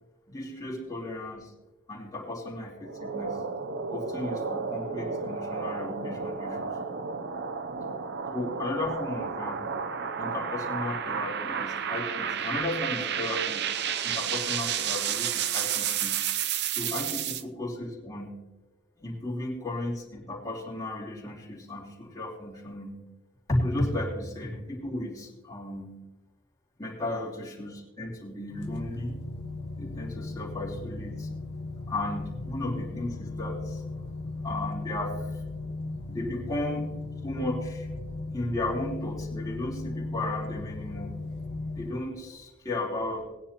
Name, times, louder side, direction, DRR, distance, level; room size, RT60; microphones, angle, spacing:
voice 1, 0.3-1.5 1.9-3.4 3.9-6.8 8.3-9.8 10.2-13.7 14.0-16.2 16.7-18.3 19.0-23.0 23.5-26.0 26.8-29.2 29.8-31.3 31.9-33.8 34.4-35.4 36.1-36.9 37.2-37.9 38.3-41.2 41.8-43.2, left 1 dB, 20° left, -3 dB, 3.0 m, -34 dB
sound 1, 2.8-17.4, right 7 dB, 55° right, 0.6 m, -31 dB
sound 2, 28.5-41.9, left 2 dB, 55° left, 1.0 m, -36 dB
19.5 x 10.0 x 2.9 m, 1.1 s
head